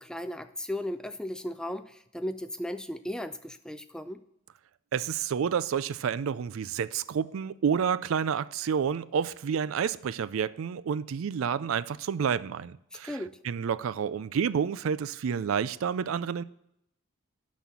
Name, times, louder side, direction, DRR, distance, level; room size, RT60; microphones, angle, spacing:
voice 1, 0.0-4.2 13.0-13.4, left 1 dB, 5° left, 0.3 m, -36 dB
voice 2, 4.9-16.4, right 7 dB, 75° right, 0.4 m, -29 dB
12.0 x 4.2 x 7.0 m
head